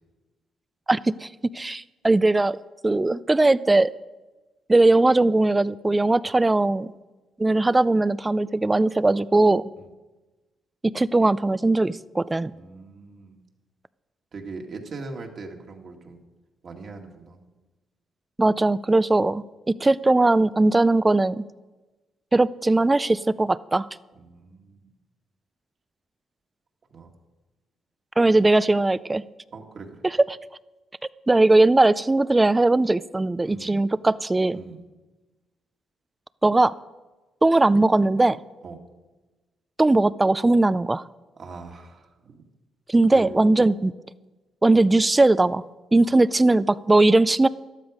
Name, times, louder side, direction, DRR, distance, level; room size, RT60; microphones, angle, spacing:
voice 1, 0.9-1.3 1.5-2.6 2.8-3.9 4.7-6.9 7.4-9.6 10.8-12.5 18.4-21.4 22.3-23.9 28.2-29.2 30.0-30.4 31.3-34.6 36.4-36.7 37.4-38.4 39.8-41.0 42.9-43.9 44.6-45.6 45.9-47.5, right 2 dB, 15° right, 18 dB, 0.4 m, -19 dB
voice 2, 12.5-13.4 14.3-16.2 16.6-17.4 24.2-24.9 26.9-27.1 29.5-30.0 33.4-33.8 34.5-34.8 38.6-38.8 41.4-42.4 43.1-43.7 46.0-46.2, right 4 dB, 50° right, 2 dB, 2.3 m, -40 dB
14.0 x 12.0 x 5.2 m, 1.2 s
cardioid pair, 90°, 0 cm